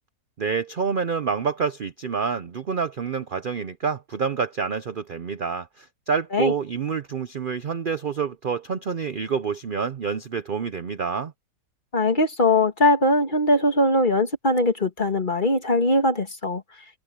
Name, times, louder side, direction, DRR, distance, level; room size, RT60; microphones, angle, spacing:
voice 1, 0.4-11.3, right 6 dB, 55° right, 0.5 m, -27 dB
voice 2, 11.9-16.6, left 1 dB, 30° left, 2.3 m, -21 dB
omnidirectional pair, 1.7 m